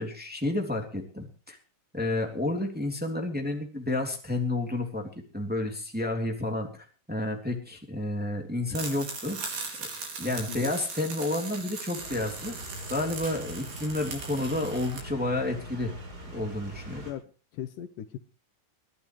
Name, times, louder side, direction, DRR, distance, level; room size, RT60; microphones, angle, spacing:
voice 1, 0.0-1.6 1.9-9.4 9.8-9.9 10.2-12.6 12.9-15.9 16.3-17.1, left 2 dB, 5° right, 2 dB, 2.6 m, -30 dB
sound 1, 8.7-15.0, right 4 dB, 85° right, 6.2 m, -39 dB
voice 2, 10.3-10.6 17.1-18.2, left 11 dB, 70° left, 11 dB, 2.4 m, -39 dB
sound 2, 12.0-17.1, equal, 25° right, 5.9 m, -42 dB
23.0 x 15.5 x 3.1 m, 0.36 s
omnidirectional pair, 4.1 m